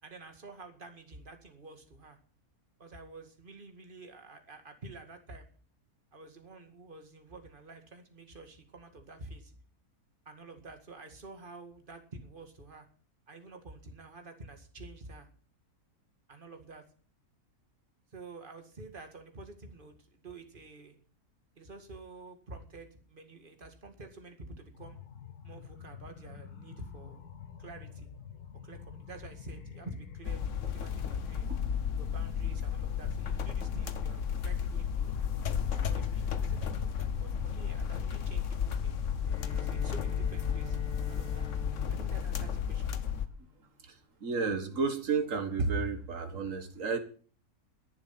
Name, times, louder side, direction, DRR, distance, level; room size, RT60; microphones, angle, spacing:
voice 1, 0.0-2.2 2.8-5.5 6.1-9.6 10.3-12.9 13.3-15.3 16.3-16.8 18.1-20.9 21.6-25.0 25.4-27.3 27.6-28.1 28.6-31.5 32.0-35.1 35.7-39.0 39.4-41.5 41.9-43.0, right 2 dB, 35° right, 5 dB, 2.3 m, -49 dB
sound 1, 24.7-39.7, left 7 dB, 90° left, 1.7 m, -48 dB
sound 2, 30.3-43.3, left 7 dB, 55° left, 1.3 m, -33 dB
Bowed string instrument, 39.2-43.5, left 8 dB, 10° left, 1.9 m, -48 dB
voice 2, 44.2-47.0, right 4 dB, 55° right, 8 dB, 2.0 m, -31 dB
21.5 x 7.4 x 5.9 m, 0.41 s
omnidirectional pair, 1.6 m